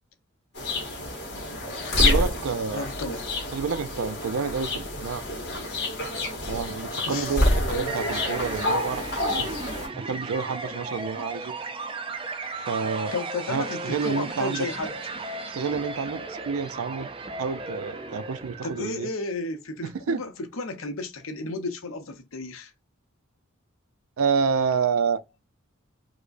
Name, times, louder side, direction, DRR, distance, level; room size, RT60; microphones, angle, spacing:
sound 1, 0.5-9.9, left 1 dB, 55° left, 1.8 m, -27 dB
voice 1, 2.0-2.9 3.5-5.2 6.5-9.5 10.0-11.5 12.5-13.1 13.5-14.7 15.5-17.1 17.4-19.1 19.8-20.2 24.2-25.2, right 5 dB, 90° right, 0.4 m, -29 dB
voice 2, 2.7-3.3 7.1-7.4 13.1-15.0 18.6-22.7, left 3 dB, 80° left, 0.8 m, -33 dB
sound 2, 7.9-19.0, right 3 dB, 25° right, 0.4 m, -36 dB
4.9 x 2.1 x 2.5 m
head